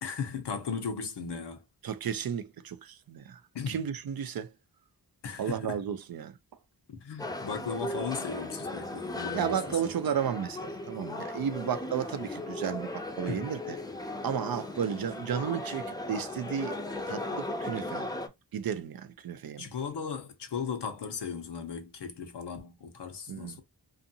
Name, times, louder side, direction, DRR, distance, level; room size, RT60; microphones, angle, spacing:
voice 1, 0.0-1.6 3.5-3.8 5.2-5.8 6.9-9.8 13.2-13.5 19.6-23.6, left 6 dB, 80° left, 0.8 m, -37 dB
voice 2, 1.8-3.4 3.7-4.5 5.4-6.4 9.3-13.8 14.2-16.8 17.1-18.1 18.5-19.7 23.3-23.6, right 8 dB, 60° right, 0.5 m, -33 dB
sound 1, 7.2-18.3, left 2 dB, 10° left, 0.5 m, -37 dB
2.6 x 2.4 x 2.7 m
cardioid pair, 50°, 41 cm